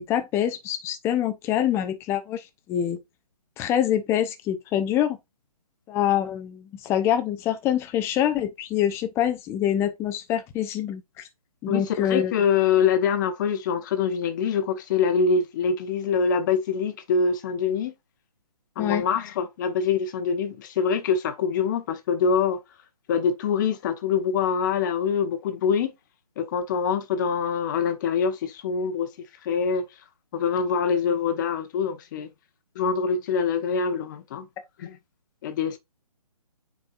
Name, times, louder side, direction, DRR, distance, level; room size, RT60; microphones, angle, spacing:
voice 1, 0.0-3.0 3.6-5.2 5.9-11.3 11.6-12.3 18.8-19.1, left 10 dB, 15° left, 0.8 m, -25 dB
voice 2, 11.7-17.9 18.8-22.6 23.1-25.9 26.4-29.1 29.4-29.8 30.3-32.3 32.7-34.5 34.8-35.0 35.4-35.8, left 6 dB, 30° left, 1.1 m, -24 dB
9.0 x 4.7 x 2.5 m
figure-of-eight pair, 145°, 20 cm